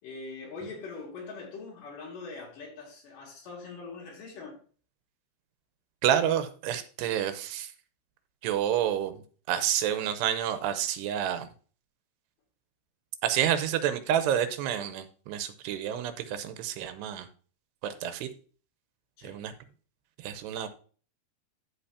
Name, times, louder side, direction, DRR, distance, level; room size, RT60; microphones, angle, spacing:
voice 1, 0.0-4.6 19.2-19.4, left 4 dB, 60° left, 3.6 m, -42 dB
voice 2, 6.0-7.7 8.4-9.2 9.5-11.5 13.2-17.3 17.8-18.3 19.2-19.5 20.2-20.7, right 10 dB, 85° right, 2.9 m, -29 dB
13.5 x 5.1 x 2.8 m
omnidirectional pair, 4.7 m